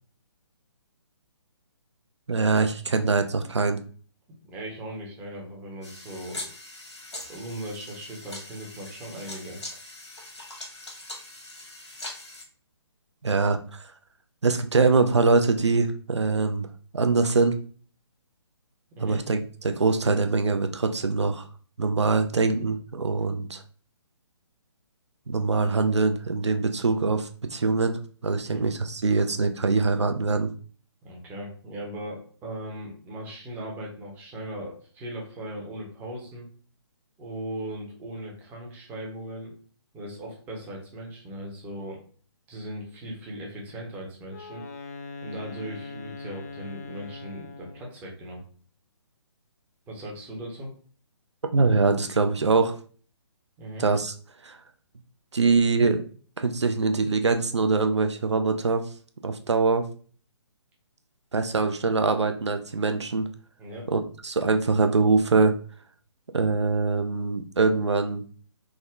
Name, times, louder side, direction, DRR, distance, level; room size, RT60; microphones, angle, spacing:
voice 1, 2.3-3.8 13.2-13.8 14.4-16.7 16.9-17.5 19.0-21.4 21.8-23.6 25.3-30.5 51.5-52.8 53.8-54.1 54.4-54.6 55.3-56.0 56.4-58.8 59.2-59.9 61.3-63.3 63.9-65.6 66.3-68.2, right 4 dB, 75° right, 7 dB, 0.5 m, -23 dB
voice 2, 4.5-6.5 7.3-9.6 19.0-19.2 28.4-28.6 31.0-36.5 37.2-39.5 39.9-42.0 42.5-44.6 45.2-48.4 49.9-50.7 53.6-53.8 63.6-63.9, right 1 dB, 10° right, -2 dB, 0.7 m, -38 dB
sound 1, 5.8-12.4, left 2 dB, 75° left, 1.4 m, -41 dB
Wind instrument woodwind instrument, 44.3-47.9, left 3 dB, 35° left, 0.4 m, -41 dB
3.6 x 2.1 x 3.4 m, 0.43 s
figure-of-eight pair, 135°, 15 cm